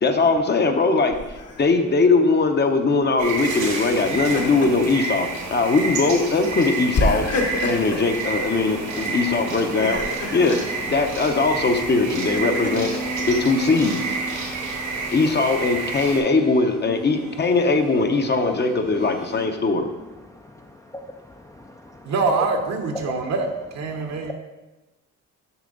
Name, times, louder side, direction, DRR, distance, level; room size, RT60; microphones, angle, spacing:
voice 1, 0.0-7.3 7.6-10.0 10.3-12.9 13.2-14.0 15.1-19.9, left 3 dB, 35° left, 6 dB, 0.8 m, -20 dB
Laughter, 1.1-1.6 3.9-4.9 5.3-5.5 6.9-8.1 9.6-10.7 11.7-13.0, left 2 dB, 55° left, 1.2 m, -28 dB
sound 1, 3.2-16.2, right 3 dB, 75° right, 2.4 m, -29 dB
sound 2, 8.5-19.5, right 1 dB, 90° left, 1.9 m, -37 dB
voice 2, 14.4-15.1 20.3-22.1 23.0-23.1 23.9-24.3, left 1 dB, 10° left, 3 dB, 0.4 m, -41 dB
voice 3, 22.0-23.5 23.7-24.3, right 4 dB, 60° right, 4 dB, 1.1 m, -24 dB
7.0 x 5.8 x 3.9 m, 1.1 s
cardioid pair, 90°, 30 cm